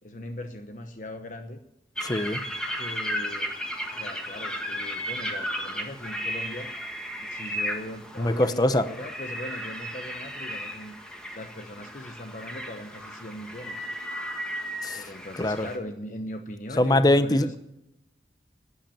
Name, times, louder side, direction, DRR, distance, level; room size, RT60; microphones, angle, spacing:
voice 1, 0.0-1.6 2.7-3.5 3.9-6.7 7.2-10.9 11.3-13.9 14.9-17.5, left 1 dB, 45° left, 6 dB, 1.0 m, -39 dB
voice 2, 2.0-2.4 8.2-8.9 14.8-15.0 15.4-15.7 16.8-17.5, left 1 dB, 20° left, 13 dB, 0.7 m, -22 dB
sound 1, 2.0-15.8, equal, 5° left, 1.6 m, -35 dB
12.5 x 10.5 x 8.9 m, 0.87 s
head